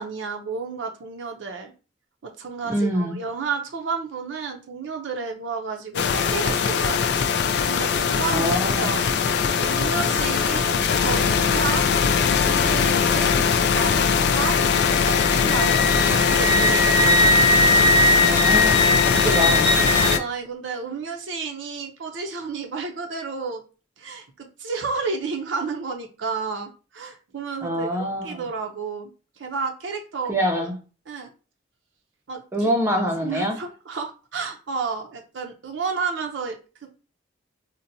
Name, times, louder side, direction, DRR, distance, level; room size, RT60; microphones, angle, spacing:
voice 1, 0.0-1.7 2.2-6.0 6.3-7.0 7.7-9.0 9.6-11.9 12.5-13.3 13.7-14.1 14.3-14.6 15.0-17.2 19.3-19.4 20.0-23.6 24.0-29.1 29.4-30.7 31.1-31.3 32.3-37.0, right 5 dB, 85° right, 0.6 m, -31 dB
voice 2, 2.6-3.2 8.3-9.0 18.2-19.7 27.6-28.5 30.3-30.7 32.5-33.6, equal, 15° right, 0.4 m, -25 dB
sound 1, 5.9-20.2, left 6 dB, 65° left, 0.3 m, -21 dB
Wind instrument woodwind instrument, 14.4-20.2, equal, 30° left, 0.7 m, -21 dB
3.9 x 2.1 x 2.6 m
head